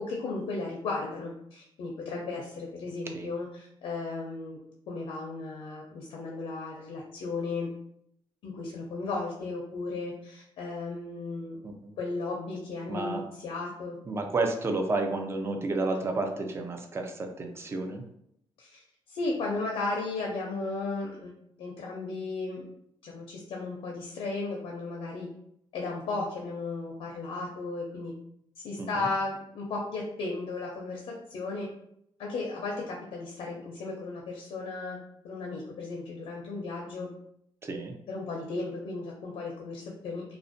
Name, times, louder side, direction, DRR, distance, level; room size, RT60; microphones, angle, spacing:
voice 1, 0.1-4.6 4.9-7.7 8.4-11.6 12.0-14.0 18.6-18.8 19.1-21.3 21.6-22.7 23.0-25.3 25.7-28.1 28.6-31.7 32.2-37.1 38.1-40.3, left 3 dB, 80° left, -2 dB, 0.5 m, -35 dB
voice 2, 11.6-12.0 12.9-13.2 14.1-18.0 28.8-29.1 37.6-37.9, right 2 dB, 25° right, 4 dB, 0.4 m, -31 dB
2.4 x 2.0 x 2.5 m, 0.72 s
cardioid pair, 120°, 9 cm